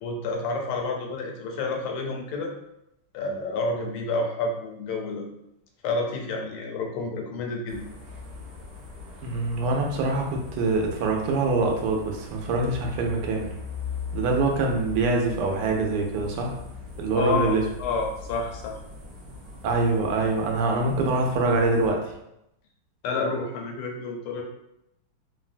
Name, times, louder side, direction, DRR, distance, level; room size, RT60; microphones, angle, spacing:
voice 1, 0.0-2.5 3.1-5.2 5.8-7.9 17.1-18.7 23.0-24.4, left 3 dB, 80° left, 1 dB, 1.5 m, -29 dB
sound 1, 7.7-21.9, left 4 dB, 55° right, 1.1 m, -40 dB
voice 2, 9.2-13.5 14.1-16.6 17.0-17.6 19.6-22.1, right 3 dB, 85° right, 1 dB, 1.5 m, -24 dB
3.6 x 2.1 x 2.4 m, 0.83 s
omnidirectional pair, 2.4 m